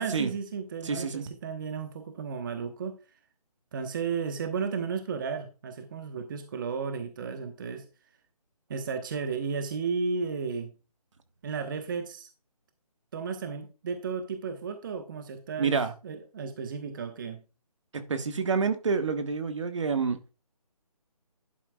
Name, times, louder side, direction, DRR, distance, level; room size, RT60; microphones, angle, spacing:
voice 1, 0.0-2.9 3.7-7.9 8.7-10.7 11.4-12.3 13.1-15.8 16.0-17.4, right 5 dB, 30° right, 1.1 m, -33 dB
voice 2, 0.8-1.3 15.6-15.9 17.9-20.2, right 5 dB, 50° right, 1.3 m, -28 dB
11.5 x 9.1 x 2.3 m
figure-of-eight pair, 160°, 20 cm